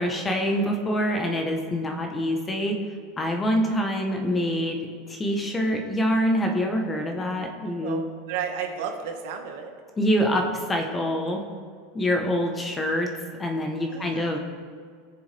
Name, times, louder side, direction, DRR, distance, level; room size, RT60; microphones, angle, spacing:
voice 1, 0.0-2.8 3.2-4.8 5.1-8.1 10.0-11.4 11.9-13.1 13.4-14.4, equal, 15° left, 3 dB, 1.0 m, -25 dB
voice 2, 7.8-9.7 13.9-14.4, right 7 dB, 65° right, 3 dB, 1.5 m, -33 dB
19.0 x 7.0 x 3.4 m, 2.1 s
supercardioid pair, 160°, 0 cm